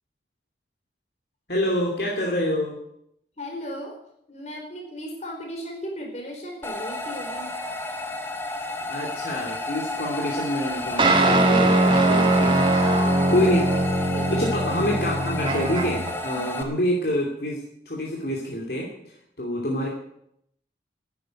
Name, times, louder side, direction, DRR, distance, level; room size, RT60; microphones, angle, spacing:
voice 1, 1.5-2.8 8.8-12.7 13.3-13.7 14.3-19.9, equal, 60° left, -2 dB, 2.6 m, -27 dB
voice 2, 3.4-4.0 4.3-7.5 12.6-13.5 14.0-14.5 16.3-16.5, equal, 35° left, 1 dB, 4.4 m, -36 dB
sound 1, 6.6-16.6, left 2 dB, 10° left, 1.3 m, -32 dB
sound 2, 11.0-16.1, right 2 dB, 25° right, 1.8 m, -21 dB
11.5 x 10.0 x 9.1 m, 0.73 s
head